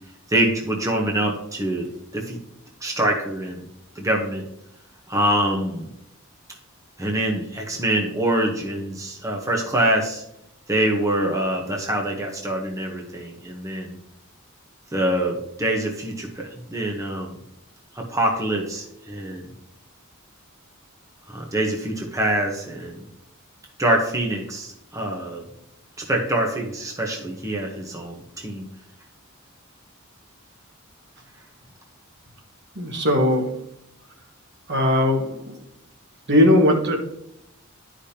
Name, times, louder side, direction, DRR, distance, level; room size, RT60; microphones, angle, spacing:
voice 1, 0.3-1.9 2.1-2.4 2.8-3.6 4.0-4.4 5.1-5.9 7.0-10.2 10.7-14.0 14.9-17.3 17.9-19.5 21.3-23.0 23.8-25.4 26.0-28.7, right 1 dB, 15° right, 0 dB, 0.9 m, -25 dB
voice 2, 32.7-33.6 34.7-35.3 36.3-37.0, left 1 dB, 55° right, 2 dB, 1.4 m, -18 dB
12.0 x 5.0 x 2.8 m, 0.80 s
head